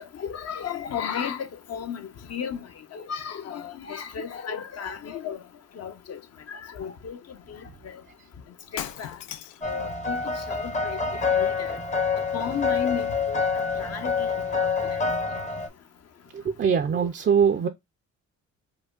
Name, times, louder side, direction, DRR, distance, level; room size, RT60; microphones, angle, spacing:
voice 1, 0.2-2.6 2.9-5.4 5.8-6.2 6.5-7.2 7.5-7.6 7.8-8.0 8.7-9.2 9.6-11.0 11.3-11.8 12.3-13.4 13.8-14.3, left 7 dB, 55° left, 0.8 m, -34 dB
Shatter, 8.8-9.7, left 11 dB, 80° left, 0.5 m, -36 dB
sound 1, 9.6-15.7, left 5 dB, 25° left, 0.7 m, -27 dB
voice 2, 16.3-17.7, right 7 dB, 40° right, 0.5 m, -22 dB
4.9 x 2.2 x 2.4 m
cardioid pair, 90°, 30 cm